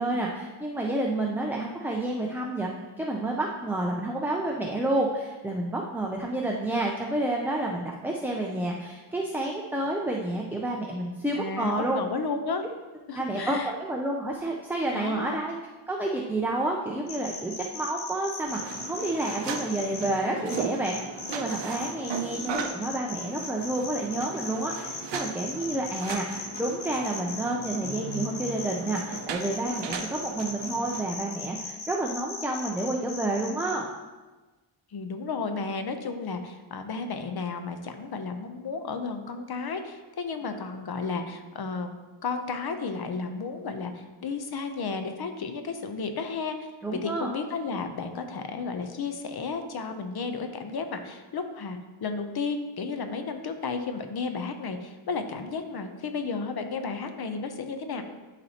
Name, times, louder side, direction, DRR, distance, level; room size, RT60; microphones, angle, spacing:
voice 1, 0.0-2.7 3.0-12.0 13.1-15.6 15.9-21.0 21.3-33.9 46.8-47.3, right 1 dB, 5° right, -2 dB, 0.3 m, -29 dB
voice 2, 11.4-12.6 13.1-13.7 14.9-15.4 34.9-41.9 42.2-58.0, left 4 dB, 50° left, 7 dB, 0.7 m, -33 dB
sound 1, 17.1-20.1 20.5-33.7, left 4 dB, 90° left, 1.1 m, -38 dB
sound 2, 18.4-31.1, right 6 dB, 60° right, 0.6 m, -37 dB
11.0 x 4.2 x 2.8 m, 1.2 s
wide cardioid pair, 160°, 49 cm